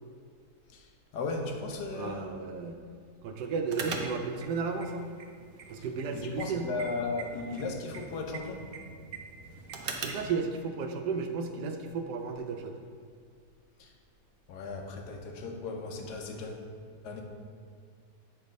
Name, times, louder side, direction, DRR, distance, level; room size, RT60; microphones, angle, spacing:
voice 1, 1.1-2.3 6.1-8.9 13.8-13.9 14.5-16.6 17.0-17.2, left 3 dB, 75° left, 2 dB, 1.4 m, -36 dB
voice 2, 1.9-2.8 3.2-5.1 5.7-6.7 9.9-12.7, right 5 dB, 80° right, 5 dB, 1.2 m, -33 dB
sound 1, 3.7-10.3, right 4 dB, 65° right, 0.5 m, -42 dB
8.1 x 3.4 x 5.2 m, 2.1 s
omnidirectional pair, 1.8 m